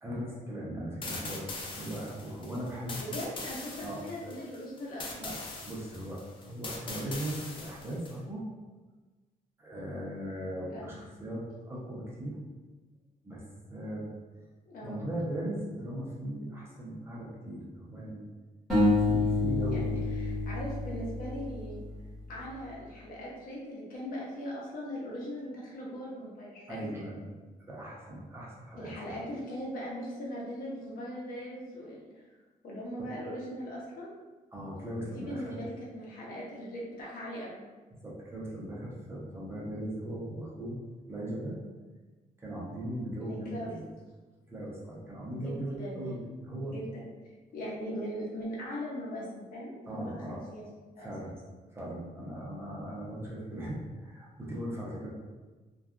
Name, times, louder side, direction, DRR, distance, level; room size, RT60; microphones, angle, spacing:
voice 1, 0.0-1.5 1.7-3.0 3.8-4.1 5.2-8.4 9.6-12.4 13.2-13.4 13.7-14.1 14.8-18.2 19.1-19.9 26.7-27.2 27.7-29.2 33.0-33.1 34.5-35.6 37.9-40.8 41.1-41.6 42.4-43.8 44.5-46.7 49.9-50.4 51.0-51.4 51.7-55.1, right 1 dB, 15° right, -6 dB, 0.5 m, -38 dB
sound 1, 1.0-8.2, left 3 dB, 35° left, 0.4 m, -41 dB
voice 2, 3.0-5.3 10.7-11.0 14.7-15.0 19.7-21.8 22.3-26.9 28.8-32.2 32.6-34.1 35.0-37.6 43.2-43.8 45.3-46.1 46.6-47.0 47.5-50.6 51.0-51.1, equal, 70° left, -4 dB, 0.7 m, -40 dB
sound 2, 18.7-21.9, left 2 dB, ahead, 1.2 m, -28 dB
2.7 x 2.3 x 2.3 m, 1.3 s
wide cardioid pair, 160°, 15 cm